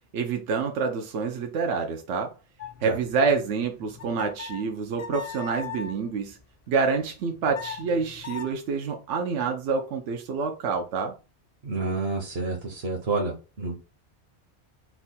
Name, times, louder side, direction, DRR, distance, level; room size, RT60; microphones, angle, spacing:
voice 1, 0.1-2.3 2.8-6.4 6.7-11.1, right 5 dB, 90° right, 1.0 m, -27 dB
sound 1, 2.6-6.0 7.2-8.5, left 6 dB, 45° left, 0.5 m, -39 dB
voice 2, 11.6-13.8, right 3 dB, 65° right, 1.1 m, -29 dB
4.6 x 2.2 x 4.1 m
omnidirectional pair, 1.2 m